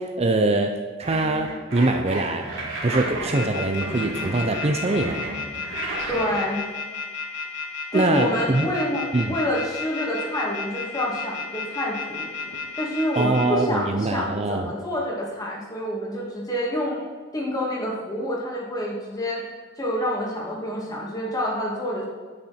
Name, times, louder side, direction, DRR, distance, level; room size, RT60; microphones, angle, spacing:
voice 1, 0.0-2.5 2.8-5.3 7.9-8.7 9.1-9.4 13.2-14.7, right 2 dB, 30° right, 5 dB, 0.6 m, -23 dB
sound 1, 1.0-6.5, right 2 dB, 80° right, 2.7 m, -32 dB
sound 2, 3.3-13.5, left 5 dB, 65° left, 1.8 m, -32 dB
voice 2, 6.1-6.7 7.9-12.3 12.8-17.0 17.3-19.5 19.8-22.0, equal, 20° left, -3 dB, 2.3 m, -27 dB
9.9 x 8.7 x 4.3 m, 1.5 s
head